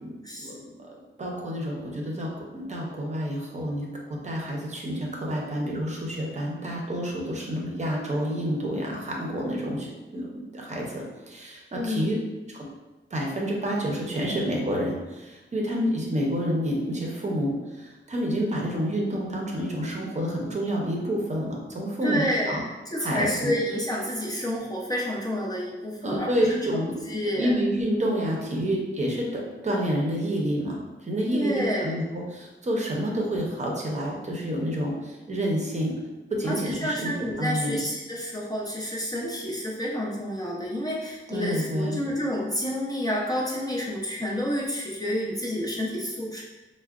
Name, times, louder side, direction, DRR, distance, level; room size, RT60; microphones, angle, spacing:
voice 1, 0.0-12.1 12.5-12.6 13.1-22.6 23.0-23.5 26.0-27.1 27.3-35.9 36.3-37.1 37.4-37.8 41.3-42.0, equal, 35° right, -2 dB, 0.5 m, -29 dB
voice 2, 11.7-12.1 22.0-22.6 22.9-26.6 27.1-27.5 31.3-31.9 36.5-46.4, equal, 20° left, -4 dB, 0.4 m, -29 dB
4.5 x 2.1 x 2.3 m, 1.1 s
wide cardioid pair, 165°, 20 cm